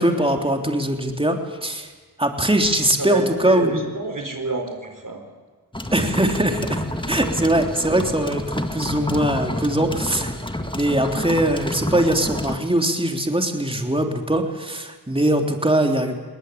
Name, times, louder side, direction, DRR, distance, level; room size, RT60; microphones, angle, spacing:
voice 1, 0.0-1.9 2.2-3.9 5.9-10.3 10.7-16.2, right 1 dB, 15° right, 3 dB, 3.2 m, -21 dB
voice 2, 3.0-5.2 7.1-7.5, right 3 dB, 50° right, 4 dB, 4.3 m, -28 dB
sound 1, 5.7-12.6, left 1 dB, 10° left, 2.0 m, -29 dB
21.5 x 19.0 x 8.5 m, 1.3 s
cardioid pair, 40°, 40 cm